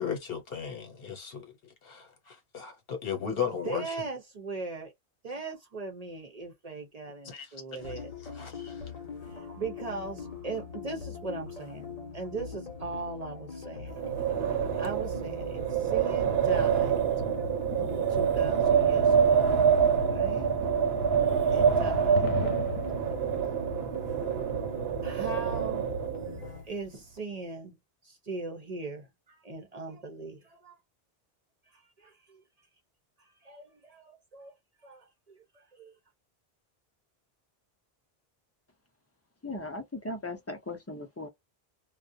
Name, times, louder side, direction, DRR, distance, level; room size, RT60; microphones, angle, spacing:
voice 1, 0.0-1.5 1.8-4.0 7.2-7.5 8.2-8.9, left 7 dB, 70° left, 1.1 m, -35 dB
voice 2, 3.3-4.9 5.2-8.1 9.2-17.0 17.8-19.5 20.1-20.5 21.5-22.2 25.0-25.9 26.2-27.8 28.0-30.8 31.7-32.4 33.2-34.5 34.8-35.9, right 3 dB, 45° right, 0.7 m, -40 dB
sound 1, 7.8-26.6, left 5 dB, 45° left, 0.9 m, -42 dB
Wind, 13.9-26.5, right 7 dB, 85° right, 0.9 m, -26 dB
sound 2, 16.2-23.4, left 5 dB, 90° left, 0.8 m, -42 dB
voice 3, 39.4-41.3, left 2 dB, 20° left, 0.5 m, -38 dB
2.4 x 2.1 x 2.5 m
omnidirectional pair, 1.0 m